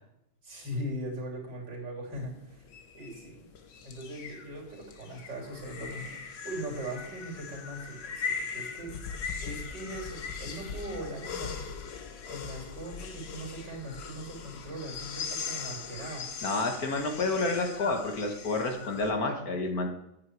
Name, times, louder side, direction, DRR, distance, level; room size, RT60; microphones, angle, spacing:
voice 1, 0.4-2.7 2.9-3.5 3.8-8.9 9.4-11.6 12.3-16.2, right 1 dB, 70° right, 0 dB, 4.2 m, -40 dB
sound 1, 2.1-19.1, left 6 dB, 75° left, 1.8 m, -40 dB
voice 2, 16.4-19.9, left 3 dB, 55° left, 4 dB, 1.9 m, -29 dB
9.5 x 9.4 x 4.8 m, 0.82 s
omnidirectional pair, 1.9 m